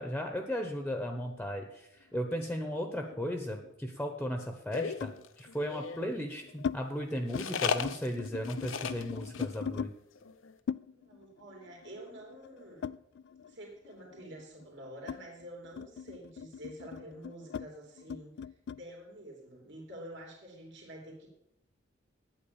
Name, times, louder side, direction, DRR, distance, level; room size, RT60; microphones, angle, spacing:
voice 1, 0.0-9.9, equal, 5° left, 4 dB, 1.0 m, -36 dB
sound 1, 2.1-3.7 5.0-5.3 6.0-6.8 7.2-7.5 7.8-9.9 10.7-13.6 13.9-18.8, left 7 dB, 60° left, 0.3 m, -41 dB
sound 2, 4.7-6.1 7.3-9.0 9.3-9.5 9.8-9.9 10.2-10.5, left 6 dB, 80° left, 0.7 m, -35 dB
voice 2, 10.9-12.9 13.5-18.3 18.7-21.3, right 1 dB, 65° right, 0 dB, 3.0 m, -48 dB
9.1 x 8.8 x 7.1 m, 0.84 s
head